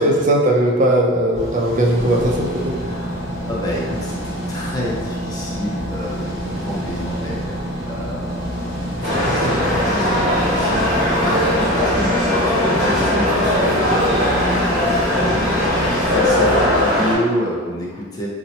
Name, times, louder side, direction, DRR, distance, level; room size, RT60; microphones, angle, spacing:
voice 1, 0.0-2.8 9.0-9.8, right 1 dB, 40° right, -1 dB, 0.4 m, -19 dB
sound 1, 1.3-16.8, equal, 70° left, 1.0 m, -30 dB
sound 2, 1.9-16.3, right 1 dB, 85° right, 0.8 m, -30 dB
voice 2, 2.8-3.2 3.5-8.8 9.2-14.8 15.1-15.6 15.9-18.3, equal, 20° left, -5 dB, 0.6 m, -28 dB
sound 3, 9.0-17.1, left 1 dB, 40° left, 1.3 m, -19 dB
2.7 x 2.1 x 4.0 m, 1.5 s
head